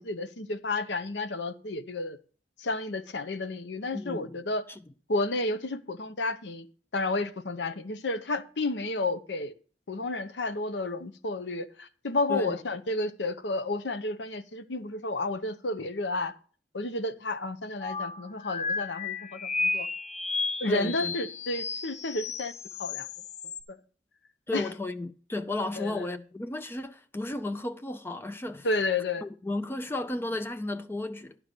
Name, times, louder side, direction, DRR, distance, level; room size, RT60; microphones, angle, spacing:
voice 1, 0.0-2.2 2.6-4.6 5.1-6.7 6.9-9.5 9.9-16.3 16.7-19.9 20.6-22.5 22.8-23.1 23.7-23.8 24.5-24.7 25.8-26.1 28.6-29.2, left 2 dB, 85° left, 0.8 m, -31 dB
voice 2, 3.9-4.4 4.7-4.8 12.3-12.6 20.7-21.1 24.5-28.7 29.2-31.4, left 2 dB, 15° left, 0.4 m, -33 dB
sound 1, 17.8-23.6, left 4 dB, 40° left, 0.8 m, -33 dB
11.5 x 4.9 x 6.6 m
head